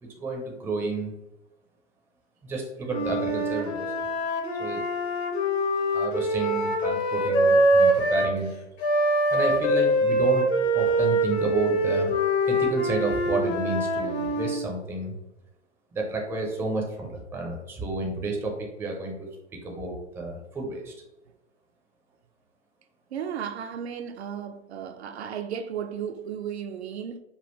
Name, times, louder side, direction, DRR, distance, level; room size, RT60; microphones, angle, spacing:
voice 1, 0.0-1.1 2.4-3.9 4.6-4.8 5.9-8.5 9.3-10.5 10.7-12.1 12.5-15.2 15.9-19.3 19.6-20.9, right 3 dB, 5° right, 0.5 m, -31 dB
Wind instrument woodwind instrument, 2.9-8.3 8.8-14.7, right 1 dB, 60° left, 1.2 m, -24 dB
voice 2, 23.1-27.2, right 8 dB, 60° right, 0.5 m, -34 dB
5.2 x 2.3 x 3.0 m
figure-of-eight pair, 115°, 36 cm